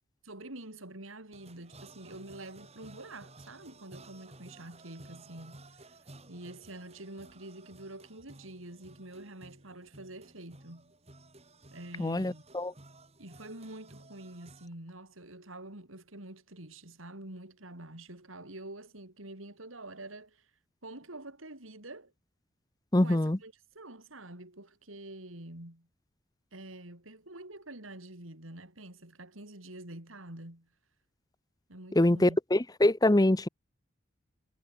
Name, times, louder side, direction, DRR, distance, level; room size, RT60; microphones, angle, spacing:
voice 1, 0.2-6.0 6.3-10.9 11.7-12.4 13.2-20.5 20.8-22.1 23.0-25.9 26.5-30.7 31.7-32.4, right 1 dB, 90° right, 5.3 m, -47 dB
sound 1, 1.3-14.7, right 2 dB, 30° right, 5.2 m, -55 dB
voice 2, 12.0-12.7 22.9-23.4 31.9-33.5, left 1 dB, 20° left, 0.7 m, -24 dB
head